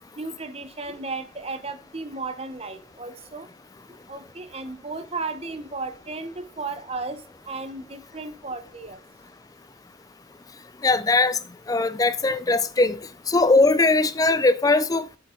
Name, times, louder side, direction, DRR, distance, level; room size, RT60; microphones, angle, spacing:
voice 1, 0.2-3.5 4.1-7.2 7.5-9.0, right 3 dB, 30° right, 0.8 m, -34 dB
voice 2, 10.8-11.4 11.7-13.0 13.3-15.2, left 3 dB, 20° left, 0.4 m, -20 dB
7.2 x 6.9 x 3.7 m
head